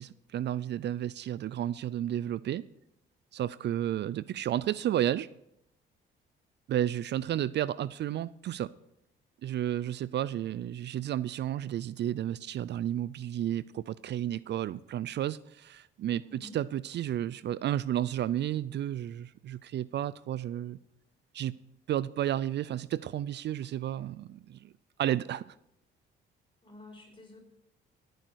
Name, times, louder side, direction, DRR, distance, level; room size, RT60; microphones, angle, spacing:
voice 1, 0.0-2.6 3.3-5.3 6.7-8.7 9.4-20.8 21.3-21.6 21.9-24.7 25.0-25.5, right 11 dB, 60° right, 0.4 m, -32 dB
voice 2, 16.2-16.6 26.6-27.4, left 1 dB, 25° left, 5.7 m, -50 dB
16.5 x 9.2 x 4.7 m
cardioid pair, 90°, 20 cm